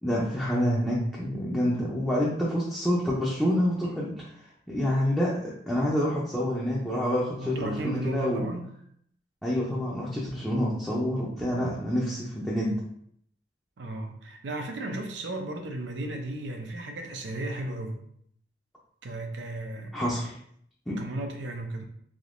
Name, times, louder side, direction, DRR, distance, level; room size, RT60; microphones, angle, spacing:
voice 1, 0.0-4.4 4.7-8.5 9.4-12.8 19.9-20.3 20.9-21.0, equal, 5° left, -7 dB, 0.5 m, -27 dB
voice 2, 7.4-8.6 13.8-18.0 19.0-19.9 21.0-21.8, right 1 dB, 85° right, 3 dB, 0.6 m, -34 dB
3.5 x 2.7 x 2.5 m, 0.68 s
head